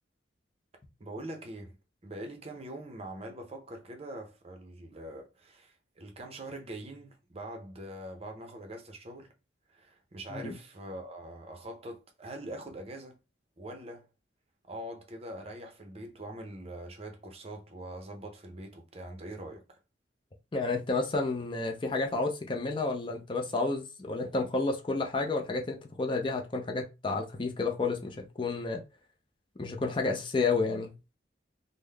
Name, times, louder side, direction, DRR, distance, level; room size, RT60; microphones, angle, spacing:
voice 1, 1.0-1.7 2.0-9.3 9.7-13.2 13.6-14.0 14.6-19.8, right 1 dB, 35° right, 0.6 m, -43 dB
voice 2, 20.5-28.8 29.6-30.9, left 3 dB, 25° left, 0.5 m, -31 dB
3.7 x 2.1 x 3.2 m
head